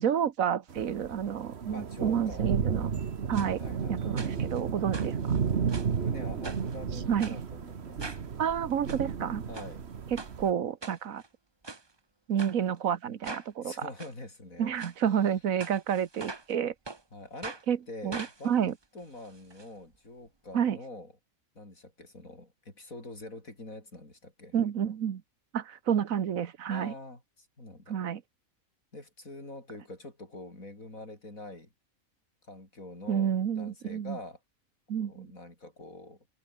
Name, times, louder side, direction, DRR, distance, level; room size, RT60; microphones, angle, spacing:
voice 1, 0.0-2.9 3.3-3.6 3.9-5.4 7.1-7.4 8.4-9.4 10.1-11.2 12.3-13.7 14.6-16.7 17.7-17.8 18.0-18.7 20.5-20.8 24.5-25.2 25.5-26.9 27.9-28.2 33.1-34.2 34.9-35.3, right 8 dB, 80° right, 1.5 m, -29 dB
sound 1, 0.7-10.5, right 6 dB, 50° right, 1.5 m, -33 dB
voice 2, 1.7-2.5 3.6-4.3 5.8-8.2 9.5-9.8 13.6-14.8 15.1-15.2 17.1-17.6 17.9-18.6 18.9-21.1 21.6-24.6 26.7-28.0 28.9-31.7 32.4-34.4 35.0-36.3, left 2 dB, 80° left, 6.9 m, -45 dB
sound 2, 3.3-3.5 4.2-4.6 4.9-6.0 6.4-6.8 7.2-7.4 8.0-8.3 8.7-9.0 9.5-9.7 10.2-10.3 10.8-11.3 11.6-11.8 12.4-12.5 13.2-13.5 14.0-14.1 14.7-14.9 15.6-16.5 16.8-17.0 17.4-17.6 18.1-19.6 19.9-20.0 20.3-20.4, right 3 dB, 20° right, 1.0 m, -42 dB
omnidirectional pair, 1.4 m